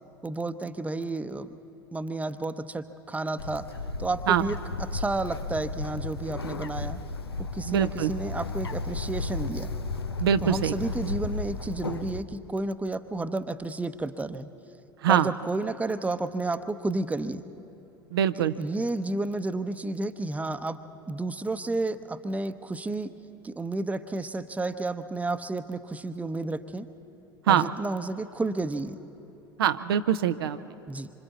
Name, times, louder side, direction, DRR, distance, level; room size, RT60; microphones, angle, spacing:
voice 1, 0.2-1.5 1.9-3.7 4.0-4.6 4.9-7.0 7.5-9.7 10.4-14.5 15.1-17.4 18.6-20.8 21.1-23.1 23.4-26.9 27.5-29.0 30.9-31.1, right 2 dB, 10° right, 10 dB, 0.8 m, -31 dB
Bird, 3.4-12.2, left 3 dB, 90° left, 0.7 m, -34 dB
voice 2, 7.7-8.1 10.2-10.9 15.0-15.3 18.1-18.5 27.4-27.7 29.6-30.8, right 9 dB, 75° right, 9 dB, 0.6 m, -24 dB
26.0 x 25.0 x 4.1 m, 3.0 s
figure-of-eight pair, 75°, 13 cm